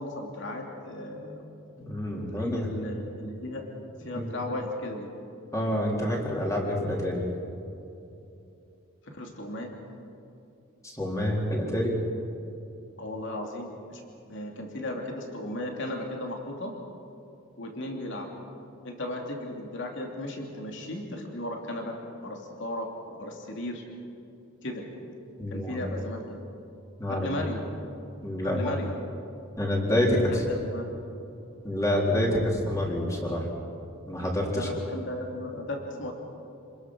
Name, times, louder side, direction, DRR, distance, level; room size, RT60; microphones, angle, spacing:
voice 1, 0.0-1.5 2.3-3.6 4.0-5.1 9.0-9.7 13.0-14.0 14.3-16.7 17.6-18.3 18.8-22.9 23.2-23.8 24.6-24.8 25.5-26.4 27.1-27.6 28.4-28.9 30.1-31.0 34.5-36.1, left 1 dB, 60° left, 1 dB, 2.9 m, -35 dB
voice 2, 1.8-2.7 4.1-4.3 5.5-7.3 10.8-12.0 25.4-25.9 27.0-27.3 28.2-28.7 29.6-30.4 31.6-33.5 34.1-34.7, left 1 dB, 15° left, -2 dB, 3.8 m, -27 dB
28.0 x 21.0 x 6.3 m, 2.7 s
head